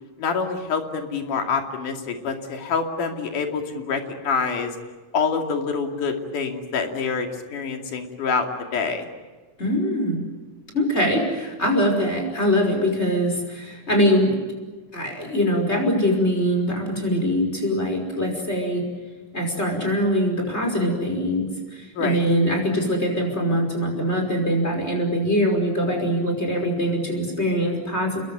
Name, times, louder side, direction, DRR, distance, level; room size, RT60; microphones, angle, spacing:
voice 1, 0.2-4.7 5.1-9.1 22.0-22.2, left 5 dB, 90° left, 4 dB, 4.1 m, -26 dB
voice 2, 9.6-10.2 10.7-14.4 14.9-18.8 19.3-28.2, equal, 20° left, 3 dB, 5.8 m, -23 dB
28.0 x 22.0 x 9.3 m, 1.3 s
omnidirectional pair, 3.5 m